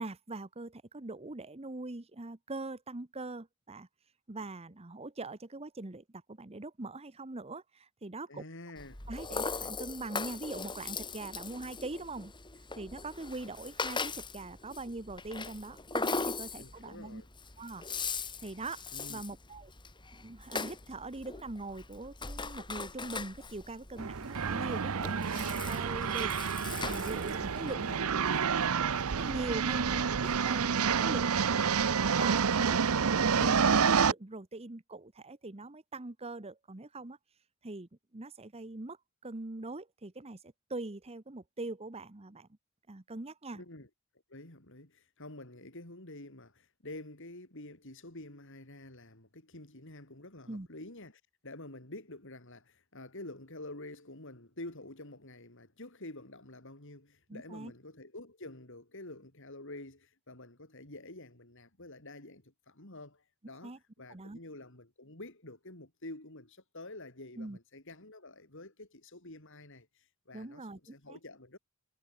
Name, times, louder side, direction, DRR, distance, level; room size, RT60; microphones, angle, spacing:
voice 1, 0.0-3.9 4.3-8.4 9.1-12.3 12.8-17.2 17.6-17.9 18.4-19.7 20.1-26.3 26.8-28.2 28.5-28.7 29.1-30.0 30.4-30.7 31.0-31.9 32.2-37.2 37.6-39.0 39.2-42.5 42.9-43.6 50.5-50.7 57.3-57.7 63.6-63.8 64.1-64.4 67.4-67.6 70.3-71.2, right 2 dB, 30° right, 1.0 m, -42 dB
voice 2, 8.3-9.0 16.5-17.3 18.9-19.2 27.4-28.2 29.6-30.0 43.5-43.9 44.3-71.6, left 2 dB, 60° left, 4.5 m, -48 dB
Rattle (instrument), 8.8-27.7, left 4 dB, 20° left, 2.9 m, -40 dB
sound 1, 24.0-34.1, right 6 dB, 80° right, 0.7 m, -29 dB
head